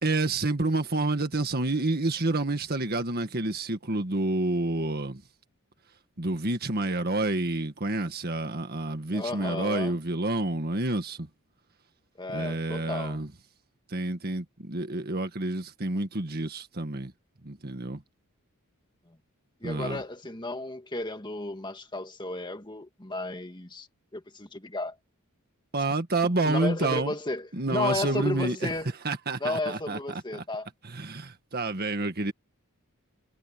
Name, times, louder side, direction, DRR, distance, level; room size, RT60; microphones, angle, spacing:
voice 1, 0.0-5.2 6.2-11.3 12.3-13.3 13.9-17.1 17.4-18.0 19.6-20.0 25.7-27.1 27.5-28.7 29.0-30.4 30.8-32.3, right 2 dB, 45° right, 1.7 m, -29 dB
voice 2, 9.1-10.0 12.2-13.2 19.1-19.2 19.6-23.9 24.1-24.9 26.4-28.9 29.4-30.7, left 2 dB, 20° left, 1.9 m, -33 dB
head